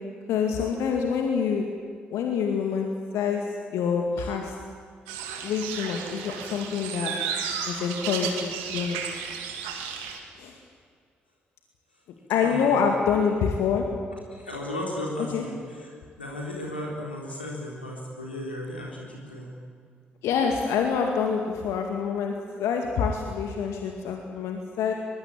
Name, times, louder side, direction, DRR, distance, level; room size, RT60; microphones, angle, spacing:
voice 1, 0.3-1.6 2.1-2.9 3.1-4.5 5.4-7.1 7.6-9.0 10.4-10.6 12.3-13.8 15.3-15.4 20.2-24.9, left 6 dB, 65° left, 2 dB, 2.2 m, -26 dB
sound 1, 5.1-10.2, right 7 dB, 75° right, 2.3 m, -33 dB
voice 2, 12.4-12.8 14.3-15.9 16.2-19.5, left 1 dB, 90° left, -2 dB, 3.7 m, -35 dB
23.5 x 22.0 x 8.9 m, 2.1 s
figure-of-eight pair, 40°, 5 cm